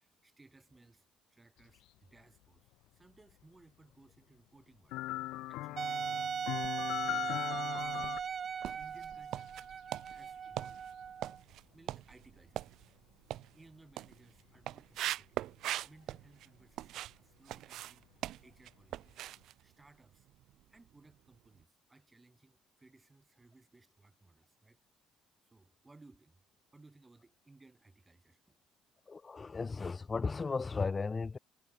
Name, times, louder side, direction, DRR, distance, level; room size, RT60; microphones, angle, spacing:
voice 1, 0.0-5.1 5.5-6.4 6.8-8.2 8.8-10.9 11.7-12.7 13.5-15.4 15.8-18.1 18.4-20.3 20.7-24.8 25.4-26.4 26.7-28.6, right 3 dB, 15° right, 7.0 m, -62 dB
sound 1, 4.9-8.2 11.0-11.1, left 18 dB, 75° left, 0.5 m, -39 dB
Wind instrument woodwind instrument, 5.8-11.4, right 7 dB, 35° right, 0.3 m, -38 dB
sound 2, 6.5-7.2 7.7-17.2 17.4-20.6 20.9-21.1 21.6-21.7, right 14 dB, 60° right, 1.3 m, -42 dB
voice 2, 29.1-31.4, left 4 dB, 20° left, 1.4 m, -35 dB
cardioid pair, 140°, 0 cm